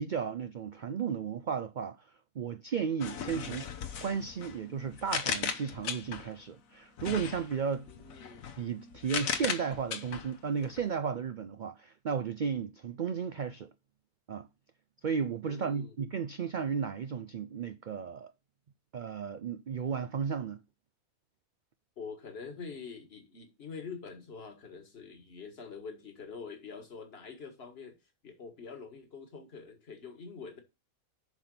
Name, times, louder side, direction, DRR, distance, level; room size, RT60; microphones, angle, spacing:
voice 1, 0.0-2.0 2.4-3.7 4.0-7.9 8.6-13.7 14.3-14.5 15.0-18.3 18.9-20.6, right 6 dB, 85° right, 0.4 m, -34 dB
sound 1, 3.0-6.4 7.0-10.9, left 7 dB, 70° left, 1.3 m, -38 dB
voice 2, 7.9-8.6 15.5-16.0 22.0-30.6, left 5 dB, 45° left, 1.8 m, -45 dB
7.2 x 5.8 x 5.4 m
omnidirectional pair, 1.5 m